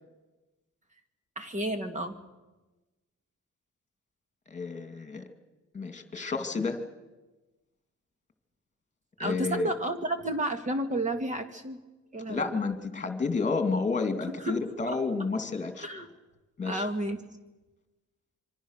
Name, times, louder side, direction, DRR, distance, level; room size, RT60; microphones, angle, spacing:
voice 1, 1.4-2.2 9.2-11.8 12.1-12.6 14.4-14.6 15.8-16.1 16.6-17.2, right 1 dB, 25° right, 7 dB, 2.2 m, -31 dB
voice 2, 4.5-5.2 5.7-6.8 9.2-9.7 12.3-15.9 16.6-16.9, left 4 dB, 25° left, 7 dB, 2.4 m, -30 dB
26.0 x 25.0 x 6.6 m, 1.1 s
cardioid pair, 155°, 30 cm